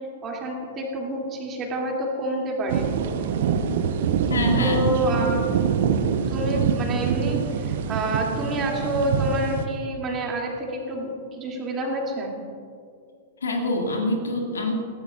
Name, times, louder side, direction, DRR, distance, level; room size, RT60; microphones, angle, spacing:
voice 1, 0.2-3.2 4.6-5.4 6.3-12.3, right 1 dB, 25° right, -1 dB, 2.7 m, -28 dB
sound 1, 2.7-9.7, right 7 dB, 55° right, 0.9 m, -24 dB
voice 2, 4.3-4.8 13.4-14.7, left 2 dB, 70° left, 1 dB, 2.2 m, -25 dB
20.0 x 15.5 x 2.5 m, 2.2 s
figure-of-eight pair, 100°, 0 cm